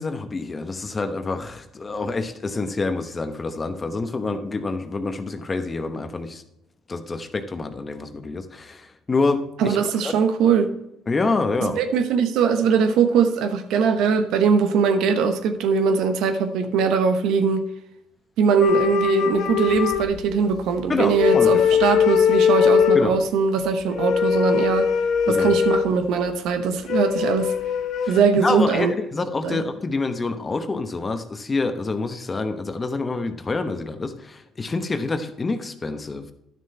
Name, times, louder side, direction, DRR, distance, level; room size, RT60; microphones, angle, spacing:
voice 1, 0.0-6.4 6.9-10.2 11.1-11.8 20.9-21.6 22.9-23.2 25.3-25.5 28.0-36.2, left 3 dB, 30° left, 9 dB, 1.0 m, -27 dB
voice 2, 9.6-10.7 11.6-17.7 18.4-24.9 25.3-27.5 28.1-28.9 29.4-29.6, right 6 dB, 75° right, 9 dB, 0.9 m, -21 dB
sound 1, 18.6-20.7 21.0-23.1 23.9-25.9 26.9-28.2, left 7 dB, 65° left, 0.9 m, -20 dB
10.5 x 6.5 x 4.4 m, 0.83 s
supercardioid pair, 80°, 0 cm